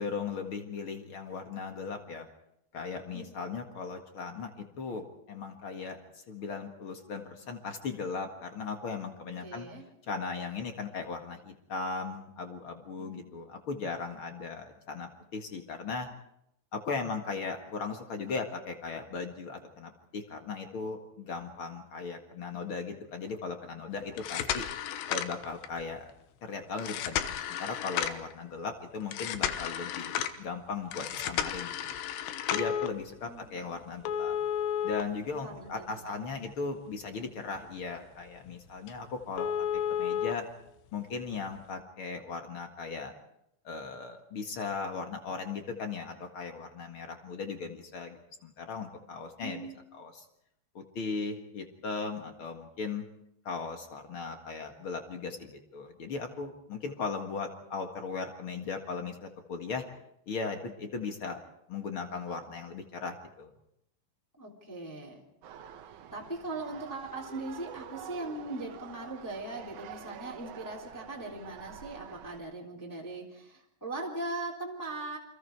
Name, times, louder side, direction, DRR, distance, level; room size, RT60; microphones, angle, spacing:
voice 1, 0.0-2.3 2.7-9.7 10.1-16.1 16.7-24.7 25.1-26.0 26.4-31.8 32.5-34.3 34.8-39.5 40.0-40.4 40.9-43.1 43.6-50.2 50.7-53.1 53.4-59.8 60.2-61.4 61.7-63.5, left 4 dB, 50° left, 5 dB, 1.6 m, -37 dB
voice 2, 3.1-3.6 9.4-9.8 12.9-13.3 33.2-33.8 35.4-36.0 49.4-49.8 64.4-65.2 66.1-75.2, right 2 dB, 5° left, -1 dB, 2.6 m, -40 dB
sound 1, 24.1-25.8 26.8-28.3 29.1-30.4 30.9-32.9 34.1-35.9 36.3-36.4 37.0-37.1 37.5-37.7 38.0-38.1 38.5-38.6 38.9-39.0 39.4-40.3 41.4-41.5, left 9 dB, 80° left, 3.2 m, -32 dB
sound 2, 65.4-72.4, right 9 dB, 80° right, 1.7 m, -47 dB
28.5 x 25.0 x 4.7 m, 0.79 s
omnidirectional pair, 5.1 m